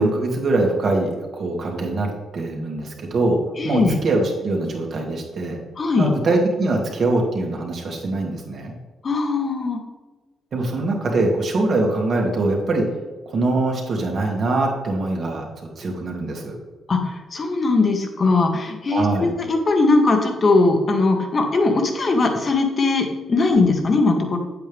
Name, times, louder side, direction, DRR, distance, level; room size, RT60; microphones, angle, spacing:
voice 1, 0.0-3.4 3.6-5.6 6.0-8.7 10.5-12.9 13.3-16.6 18.9-19.3, right 2 dB, 50° right, 0 dB, 2.3 m, -23 dB
voice 2, 3.6-3.9 5.8-6.1 9.0-9.8 16.9-24.4, left 3 dB, 35° left, 4 dB, 1.5 m, -19 dB
9.2 x 8.2 x 3.5 m, 1.3 s
cardioid pair, 130°, 0 cm